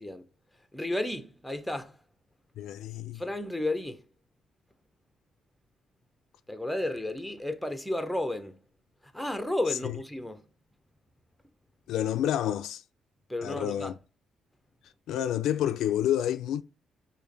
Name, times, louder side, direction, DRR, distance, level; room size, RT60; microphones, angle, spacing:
voice 1, 0.7-2.0 3.1-4.0 6.5-8.6 9.1-10.4 13.3-13.9, left 1 dB, 5° left, 0.6 m, -32 dB
voice 2, 2.6-3.2 11.9-12.8 13.4-13.9 15.1-16.6, left 11 dB, 80° left, 0.3 m, -29 dB
4.9 x 2.8 x 3.9 m
cardioid pair, 115°, 0 cm